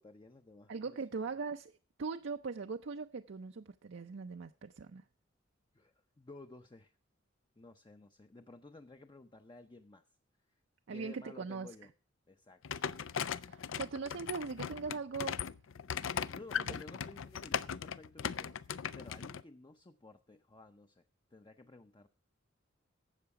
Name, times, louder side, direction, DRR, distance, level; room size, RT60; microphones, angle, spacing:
voice 1, 0.0-1.2 5.7-7.0 7.6-10.1 10.9-11.9 12.3-12.6 16.3-18.6 19.0-21.0 21.3-22.1, left 2 dB, 25° left, 0.6 m, -54 dB
voice 2, 0.7-5.0 10.9-11.7 13.3-15.4 16.7-16.8, right 4 dB, 65° right, 0.5 m, -40 dB
sound 1, 12.6-19.4, left 7 dB, 85° left, 0.5 m, -38 dB
12.5 x 7.9 x 4.8 m
head